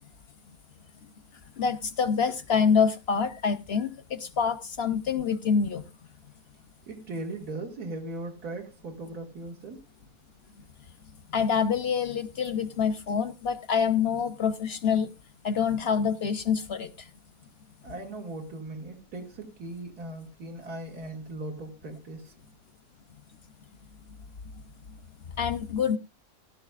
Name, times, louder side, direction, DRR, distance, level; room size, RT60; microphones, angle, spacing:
voice 1, 1.6-5.8 11.3-15.1 15.4-17.1 25.4-26.0, left 6 dB, 55° left, 0.8 m, -26 dB
voice 2, 6.9-9.8 17.8-22.5, right 2 dB, 75° right, 2.5 m, -38 dB
17.0 x 11.5 x 2.4 m
omnidirectional pair, 1.6 m